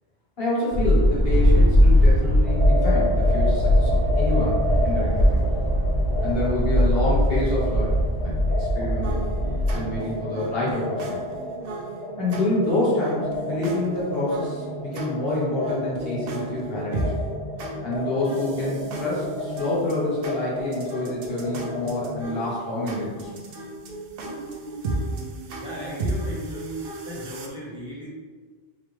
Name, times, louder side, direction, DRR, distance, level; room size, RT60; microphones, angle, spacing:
voice 1, 0.4-5.3 6.2-9.3 9.7-11.2 12.2-17.2 17.8-23.3, left 1 dB, 65° left, -7 dB, 1.7 m, -27 dB
sound 1, 0.7-9.7, equal, 25° right, 0.7 m, -20 dB
sound 2, 2.4-22.2, left 2 dB, 30° left, 1.4 m, -32 dB
sound 3, 9.0-27.5, right 2 dB, 65° right, 0.8 m, -35 dB
voice 2, 25.6-28.1, equal, 5° right, -8 dB, 1.2 m, -36 dB
3.7 x 3.2 x 3.4 m, 1.5 s
omnidirectional pair, 1.1 m